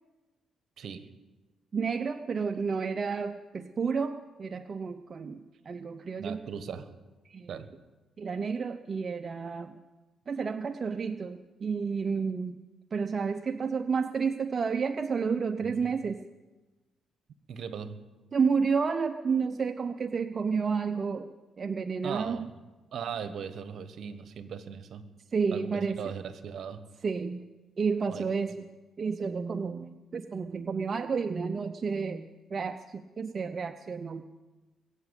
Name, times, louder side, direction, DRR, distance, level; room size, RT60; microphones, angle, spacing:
voice 1, 0.8-1.1 6.2-6.9 7.5-7.7 15.6-16.2 17.5-18.0 22.0-22.5 22.9-25.1 25.5-26.8 28.1-28.3, right 7 dB, 60° right, 11 dB, 1.3 m, -39 dB
voice 2, 1.7-6.4 7.3-7.5 8.2-9.8 10.3-12.6 12.9-16.2 18.3-21.3 21.6-22.4 25.3-26.0 27.0-27.5 27.8-28.7 29.0-34.2, right 5 dB, 40° right, 8 dB, 0.6 m, -31 dB
21.5 x 8.2 x 8.3 m, 1.2 s
cardioid pair, 90°, 0 cm